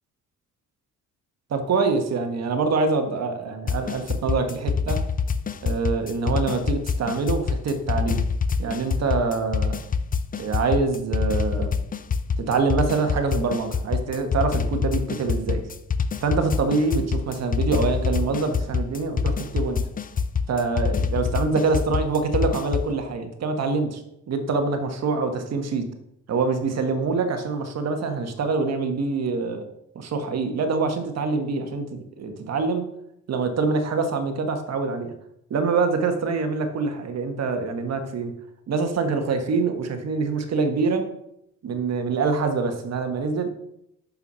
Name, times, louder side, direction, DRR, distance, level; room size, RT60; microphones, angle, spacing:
voice 1, 1.5-5.0 5.6-8.2 8.6-9.8 10.3-11.7 12.4-15.6 16.2-19.8 20.5-24.0 24.3-25.8 26.3-29.7 29.9-32.8 33.3-35.1 35.5-38.3 38.7-41.1 41.6-43.5, right 4 dB, 60° right, 6 dB, 1.4 m, -25 dB
sound 1, 3.7-22.9, left 5 dB, 30° left, 0.5 m, -26 dB
6.6 x 5.7 x 5.5 m, 0.80 s
cardioid pair, 90°, 30 cm